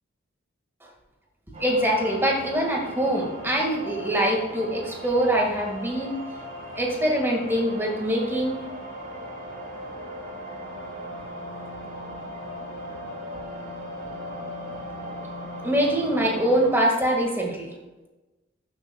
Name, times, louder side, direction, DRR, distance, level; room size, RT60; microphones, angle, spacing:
sound 1, 1.5-16.7, equal, 35° right, 3.2 m, -38 dB
voice 1, 1.6-6.2 6.8-8.6 15.6-17.7, right 1 dB, 10° right, 0 dB, 1.8 m, -24 dB
12.0 x 8.0 x 2.3 m, 1.1 s
head